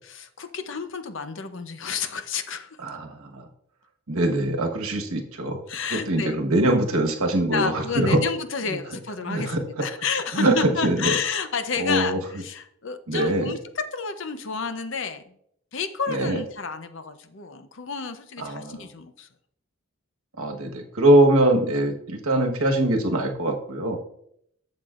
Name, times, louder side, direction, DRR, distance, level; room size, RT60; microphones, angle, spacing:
voice 1, 0.0-2.7 5.7-6.3 7.5-13.6 13.9-15.2 15.7-19.3, left 5 dB, 60° left, 9 dB, 0.7 m, -30 dB
voice 2, 2.8-3.5 4.1-5.6 5.9-8.2 8.7-8.8 9.2-9.8 10.3-11.2 11.8-12.2 13.1-13.5 16.1-16.4 18.4-18.9 20.4-24.0, right 1 dB, 90° right, 3 dB, 1.3 m, -22 dB
12.0 x 7.4 x 2.5 m, 0.70 s
head